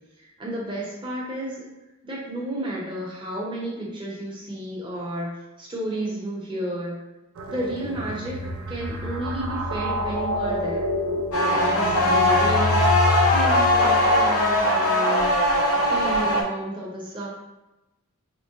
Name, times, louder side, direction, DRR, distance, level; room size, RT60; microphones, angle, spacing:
voice 1, 0.2-1.6 2.0-7.0 7.5-10.8 11.5-13.1 13.3-15.3 15.9-17.3, right 1 dB, 20° right, -5 dB, 0.7 m, -32 dB
sound 1, 7.4-14.7, left 1 dB, 65° right, 0.4 m, -28 dB
sound 2, 11.3-16.4, left 1 dB, 90° left, 0.7 m, -20 dB
4.4 x 2.1 x 2.7 m, 0.99 s
head